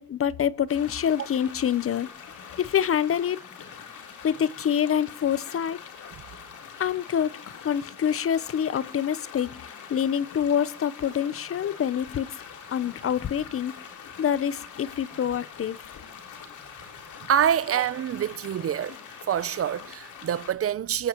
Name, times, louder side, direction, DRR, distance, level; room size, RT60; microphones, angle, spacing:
voice 1, 0.0-2.1 2.6-3.4 4.2-5.8 6.8-7.4 7.6-12.4 12.7-13.7 14.2-15.9, left 9 dB, 45° left, 0.8 m, -26 dB
sound 1, 0.7-20.5, left 7 dB, 80° left, 4.0 m, -44 dB
voice 2, 17.3-19.0 19.3-21.1, right 9 dB, 50° right, 0.7 m, -26 dB
29.0 x 14.5 x 3.0 m
cardioid pair, 90°, 30 cm